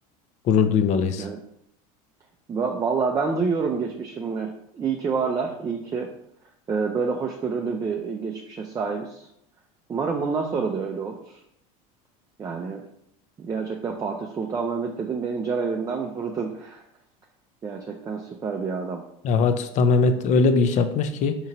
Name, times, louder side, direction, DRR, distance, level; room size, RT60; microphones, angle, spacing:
voice 1, 0.5-1.3 19.2-21.4, left 4 dB, 40° left, 10 dB, 0.4 m, -20 dB
voice 2, 2.5-4.5 4.8-6.1 6.7-9.3 9.9-11.4 12.4-12.8 13.4-16.8 17.6-19.0, right 5 dB, 20° right, 2 dB, 0.4 m, -28 dB
4.8 x 2.9 x 2.7 m, 0.75 s
supercardioid pair, 115°, 18 cm